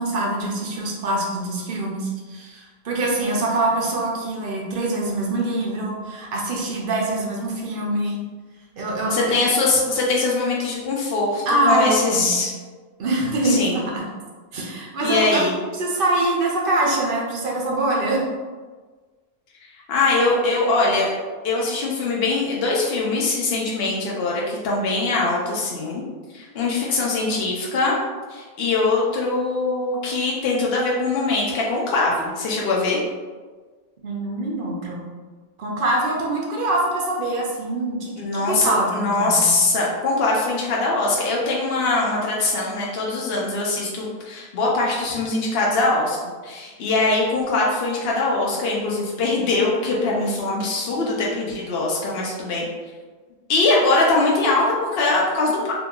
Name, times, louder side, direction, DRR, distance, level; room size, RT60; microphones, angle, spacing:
voice 1, 0.0-8.2 8.8-9.4 11.5-12.4 13.0-14.0 14.5-15.4 15.8-18.3 34.0-35.0 35.6-39.6, right 1 dB, 65° right, -2 dB, 0.8 m, -24 dB
voice 2, 9.0-12.5 13.4-13.8 15.0-15.5 19.9-21.1 21.4-26.0 26.3-28.0 28.3-33.0 38.2-52.7 53.5-55.7, left 3 dB, 75° left, -3 dB, 0.9 m, -22 dB
2.8 x 2.2 x 3.6 m, 1.4 s
omnidirectional pair, 1.0 m